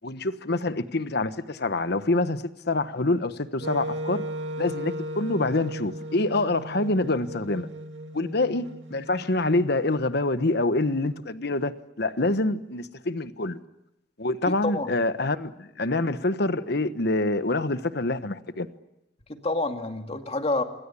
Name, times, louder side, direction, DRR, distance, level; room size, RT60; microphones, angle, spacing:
voice 1, 0.0-4.2 4.6-7.7 8.1-13.6 14.2-18.7, left 2 dB, 60° left, 1.3 m, -26 dB
Wind instrument woodwind instrument, 3.6-9.6, right 1 dB, 75° right, 2.3 m, -36 dB
voice 2, 14.5-14.9 19.3-20.6, left 2 dB, 35° left, 2.3 m, -28 dB
27.0 x 24.0 x 8.5 m
head